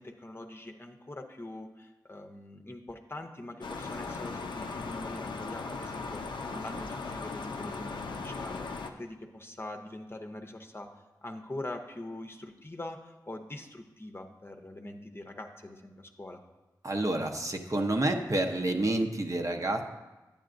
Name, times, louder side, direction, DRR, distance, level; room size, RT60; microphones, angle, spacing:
voice 1, 0.0-16.4, left 1 dB, 30° left, 5 dB, 0.7 m, -43 dB
sound 1, 3.6-8.9, left 4 dB, 85° left, 0.5 m, -38 dB
voice 2, 16.8-19.8, right 2 dB, 45° right, 3 dB, 0.8 m, -29 dB
9.2 x 8.8 x 2.5 m, 1.1 s
cardioid pair, 40°, 8 cm